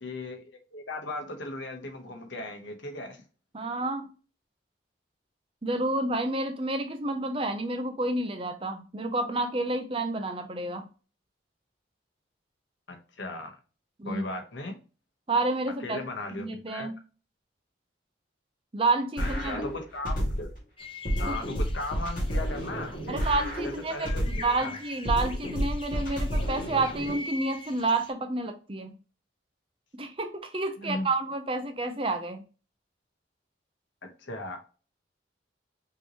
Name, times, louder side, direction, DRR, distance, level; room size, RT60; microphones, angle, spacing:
voice 1, 0.0-3.2 12.9-13.6 14.0-14.8 15.8-16.9 19.2-20.5 21.2-23.2 23.6-24.8 30.8-31.1 34.0-34.6, left 2 dB, 75° left, 1.1 m, -37 dB
voice 2, 3.5-4.1 5.6-10.8 14.0-14.2 15.3-16.0 16.4-16.9 18.7-19.6 21.2-21.4 23.1-24.1 24.3-28.9 29.9-32.4, right 2 dB, 30° right, 0.6 m, -29 dB
sound 1, 19.2-20.6 21.1-24.6 25.1-27.2, equal, 45° left, 2.1 m, -30 dB
sound 2, 20.8-28.1, left 3 dB, 30° left, 0.7 m, -45 dB
5.4 x 3.1 x 2.9 m
head